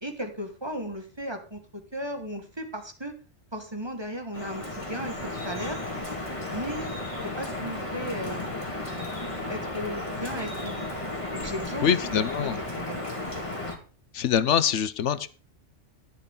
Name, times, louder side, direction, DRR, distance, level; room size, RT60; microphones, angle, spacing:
voice 1, 0.0-1.6 1.9-3.1 3.5-5.8 6.5-6.9 7.2-8.5 9.5-10.9 11.3-12.5 12.8-13.0, equal, 20° right, 5 dB, 2.0 m, -35 dB
Drip, 4.3-13.8, left 2 dB, 25° left, 2.2 m, -34 dB
voice 2, 11.8-12.6 14.1-15.3, left 8 dB, 80° left, 15 dB, 1.1 m, -24 dB
11.0 x 10.5 x 3.8 m, 0.37 s
omnidirectional pair, 1.2 m